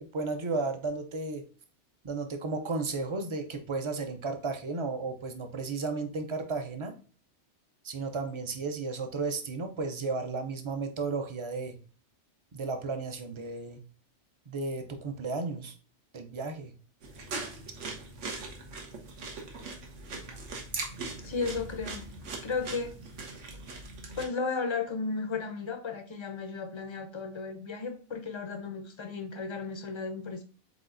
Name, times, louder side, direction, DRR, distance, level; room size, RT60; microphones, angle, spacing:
voice 1, 0.1-1.4 2.0-6.9 7.8-11.7 12.5-13.8 14.5-15.7 16.1-16.7, right 3 dB, 45° right, 6 dB, 0.4 m, -34 dB
sound 1, 17.0-24.2, right 3 dB, 85° right, 1.3 m, -40 dB
voice 2, 21.2-22.1 22.4-23.0 24.2-30.4, left 4 dB, 45° left, 5 dB, 0.3 m, -34 dB
5.0 x 4.0 x 2.5 m, 0.39 s
omnidirectional pair, 1.2 m